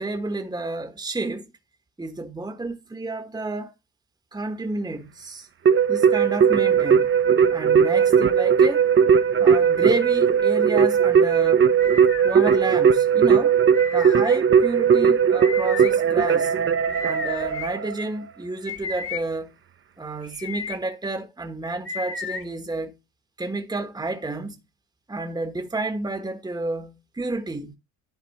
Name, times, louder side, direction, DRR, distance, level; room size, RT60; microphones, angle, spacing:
voice 1, 0.0-1.5 2.0-3.7 4.3-5.5 5.9-7.1 7.5-8.9 9.4-11.7 12.2-13.6 13.9-16.5 17.0-19.5 20.0-22.9 23.4-24.6 25.1-27.7, right 2 dB, 10° right, 1.3 m, -30 dB
Keyboard (musical), 5.7-18.1, right 7 dB, 35° right, 1.0 m, -18 dB
sound 1, 11.8-12.6 13.7-14.4 15.4-15.9 16.9-17.7 18.7-19.2 20.2-20.8 21.9-22.4, left 3 dB, 35° left, 1.7 m, -33 dB
10.5 x 3.8 x 4.3 m
hypercardioid pair, 50°, 38 cm